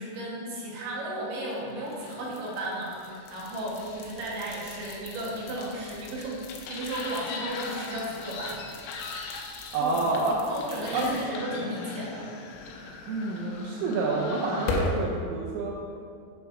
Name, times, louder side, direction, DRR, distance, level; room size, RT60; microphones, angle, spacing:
voice 1, 0.0-6.4 6.7-8.6 9.8-10.2 10.5-12.3, right 1 dB, 65° right, -5 dB, 3.1 m, -34 dB
sound 1, 1.4-15.1, left 3 dB, 85° left, 2.9 m, -38 dB
voice 2, 9.7-10.4 10.9-11.1 13.0-15.7, right 3 dB, 90° right, -2 dB, 2.2 m, -28 dB
8.0 x 4.0 x 5.3 m, 2.4 s
omnidirectional pair, 5.3 m